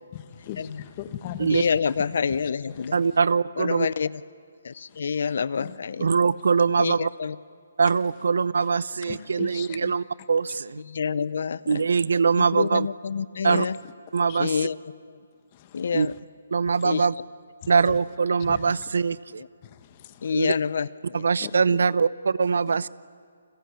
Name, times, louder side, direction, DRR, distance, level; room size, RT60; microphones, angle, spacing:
voice 1, 0.1-1.7 2.4-2.9 4.9-5.0 5.6-5.8 9.1-9.8 13.5-13.6 14.3-14.4 15.5-15.9 17.6-18.0 18.4-18.9 19.6-20.3 21.4-21.8, left 11 dB, 30° left, 1.4 m, -39 dB
voice 2, 1.5-3.0 3.6-4.1 4.6-6.1 6.8-7.4 9.8-9.9 10.9-11.8 12.5-13.8 14.4-14.8 15.0-15.2 15.7-16.1 16.8-17.1 19.4-19.5 20.2-21.3, left 6 dB, 65° left, 0.6 m, -27 dB
voice 3, 2.9-3.9 6.0-7.1 7.8-10.8 11.7-12.9 13.4-13.7 14.1-14.6 15.9-16.1 16.5-17.1 17.7-19.4 20.3-20.5 21.1-22.9, right 5 dB, 75° right, 0.6 m, -22 dB
30.0 x 21.0 x 8.7 m
hypercardioid pair, 160°, 0 cm